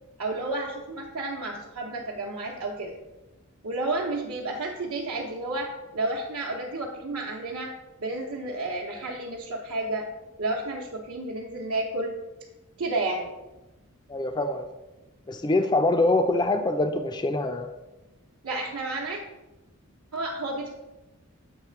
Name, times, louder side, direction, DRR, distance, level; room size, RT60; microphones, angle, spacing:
voice 1, 0.2-2.9 3.6-7.7 8.0-10.1 10.4-12.1 12.8-13.3 18.4-19.2 20.1-20.7, right 2 dB, 80° right, -4 dB, 0.9 m, -31 dB
voice 2, 14.1-14.7 15.3-17.7, left 2 dB, 20° left, 7 dB, 0.3 m, -24 dB
7.1 x 3.3 x 5.7 m, 1.0 s
head